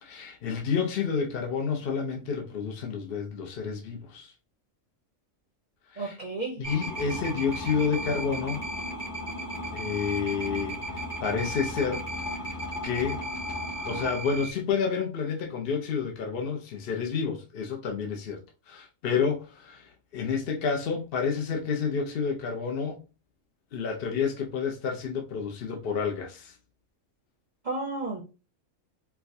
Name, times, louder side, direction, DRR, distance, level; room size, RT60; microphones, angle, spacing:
voice 1, 0.0-4.3 5.9-6.2 6.6-8.6 9.7-12.0 12.8-13.2 13.9-23.0 23.7-26.5, left 6 dB, 55° left, 0.8 m, -30 dB
voice 2, 6.0-6.6 27.6-28.2, right 3 dB, 45° right, 0.6 m, -32 dB
sound 1, 6.6-14.5, equal, 40° left, 1.4 m, -35 dB
4.5 x 2.2 x 2.6 m
omnidirectional pair, 1.3 m